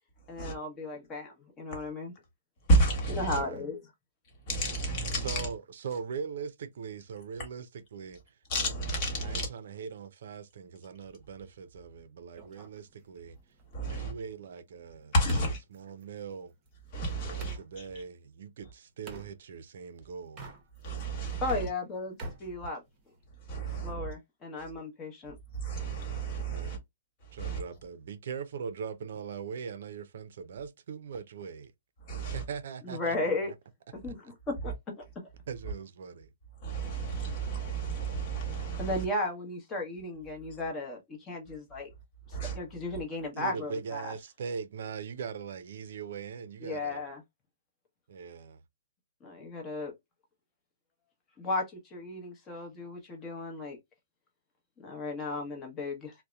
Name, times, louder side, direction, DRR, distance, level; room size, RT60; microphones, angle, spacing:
voice 1, 0.3-2.1 3.1-3.8 21.4-22.8 23.8-25.4 32.8-33.5 33.9-35.3 38.8-41.9 42.3-44.1 46.6-47.2 49.2-49.9 51.4-53.8 54.8-56.1, left 2 dB, 20° left, 0.9 m, -35 dB
voice 2, 2.7-3.4 4.5-5.5 8.5-9.5 13.7-14.1 15.1-15.6 16.9-17.6 20.8-21.7 23.5-24.1 25.5-26.8 27.4-27.6 32.0-32.4 36.6-39.0 42.3-42.6, right 2 dB, 40° left, 1.3 m, -30 dB
voice 3, 3.3-3.7 5.2-8.4 9.2-13.4 13.8-15.1 15.7-16.5 17.2-20.4 26.5-26.8 27.3-31.7 32.2-33.2 33.4-33.5 35.5-36.3 43.3-47.0 48.1-48.6, right 6 dB, 70° right, 0.4 m, -41 dB
sound 1, 12.4-17.7 19.1-19.3 20.2-21.0 21.3-23.3, right 2 dB, 25° right, 0.8 m, -48 dB
2.7 x 2.1 x 2.3 m
hypercardioid pair, 150°, 0 cm